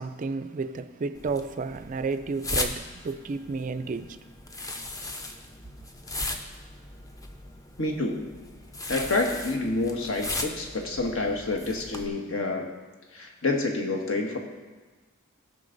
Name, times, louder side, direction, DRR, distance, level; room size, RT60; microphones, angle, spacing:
voice 1, 0.0-4.2, right 4 dB, 35° right, 0.3 m, -32 dB
sound 1, 1.1-12.1, left 2 dB, 15° left, 0.6 m, -37 dB
voice 2, 7.8-8.3 8.9-12.7 13.1-14.4, left 2 dB, 65° left, 1.4 m, -28 dB
16.5 x 5.6 x 4.0 m
head